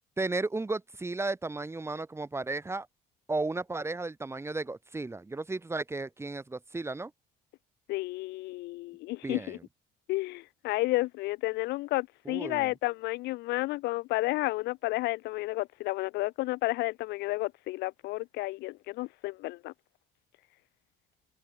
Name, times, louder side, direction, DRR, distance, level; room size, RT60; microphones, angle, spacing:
voice 1, 0.2-2.9 3.3-7.1 9.2-9.6 12.3-12.7, right 3 dB, 15° right, 1.8 m, -34 dB
voice 2, 7.9-9.6 10.1-19.7, left 20 dB, 90° left, 3.2 m, -31 dB
cardioid pair, 110°, 17 cm